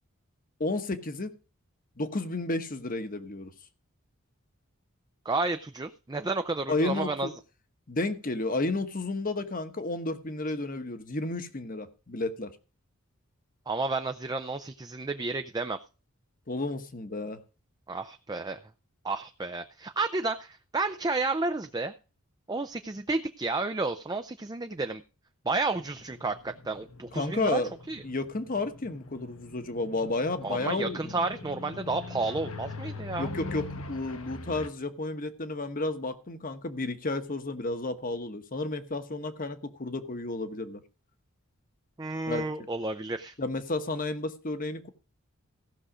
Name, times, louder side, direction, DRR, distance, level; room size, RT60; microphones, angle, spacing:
voice 1, 0.6-1.3 2.0-3.5 6.7-7.3 7.9-12.5 16.5-17.4 27.1-27.7 28.0-31.2 33.2-40.8 42.3-42.4 43.4-44.9, left 2 dB, 40° left, 10 dB, 1.1 m, -32 dB
voice 2, 5.3-7.3 13.7-15.8 17.9-18.6 19.0-21.9 22.5-25.0 25.5-27.6 27.9-28.0 30.4-33.3 42.0-43.3, right 3 dB, 20° right, 8 dB, 0.5 m, -31 dB
sound 1, 25.8-34.7, left 2 dB, 75° left, 1.3 m, -42 dB
15.5 x 6.3 x 5.0 m, 0.34 s
head